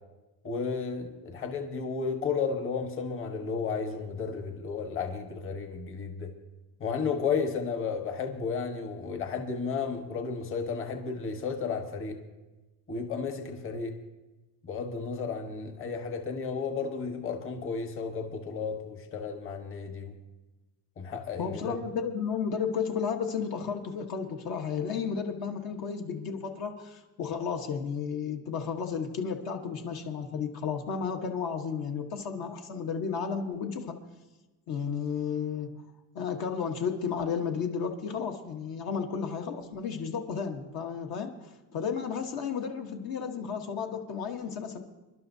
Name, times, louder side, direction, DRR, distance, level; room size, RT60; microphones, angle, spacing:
voice 1, 0.4-6.3 6.8-12.2 12.9-14.0 14.6-20.1 21.0-21.8, left 5 dB, 30° left, 4 dB, 1.3 m, -33 dB
voice 2, 21.4-34.0 34.7-35.7 36.1-41.3 41.7-44.8, left 6 dB, 55° left, 3 dB, 1.2 m, -33 dB
27.5 x 11.5 x 2.7 m, 1.1 s
cardioid pair, 175°, 43 cm